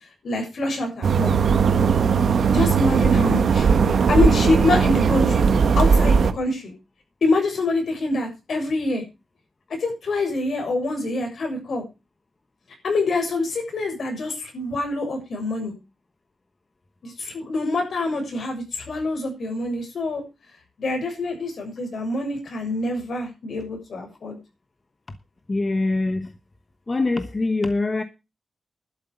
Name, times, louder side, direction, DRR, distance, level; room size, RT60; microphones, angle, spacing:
voice 1, 0.2-1.3 2.5-3.7 4.1-5.5 5.8-6.7 7.2-9.0 9.8-11.8 12.8-15.7 17.0-20.2 20.8-24.4, left 2 dB, 70° left, 7.0 m, -25 dB
sound 1, 1.0-6.3, right 6 dB, 75° right, 1.2 m, -18 dB
voice 2, 25.5-26.3 26.9-28.0, left 2 dB, 30° left, 1.1 m, -23 dB
12.0 x 8.4 x 6.9 m
wide cardioid pair, 125°, 0 cm